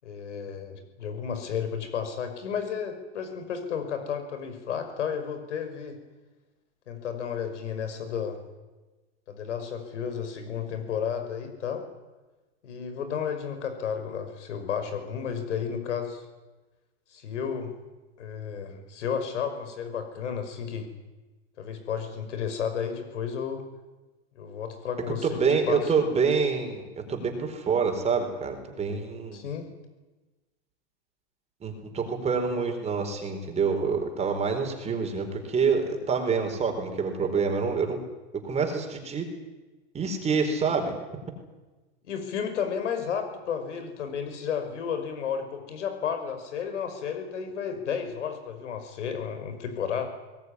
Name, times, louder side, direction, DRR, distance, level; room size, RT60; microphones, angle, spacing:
voice 1, 0.0-6.0 6.9-8.4 9.3-11.8 12.6-16.3 17.1-17.7 18.2-20.9 21.6-23.6 24.4-25.9 29.3-29.7 42.0-50.1, left 7 dB, 90° left, 8 dB, 5.7 m, -32 dB
voice 2, 25.2-26.8 27.1-29.4 31.6-38.0 38.4-39.3 39.9-40.9, right 5 dB, 20° right, 4 dB, 4.5 m, -26 dB
21.0 x 19.0 x 9.9 m, 1.2 s
supercardioid pair, 140°, 35 cm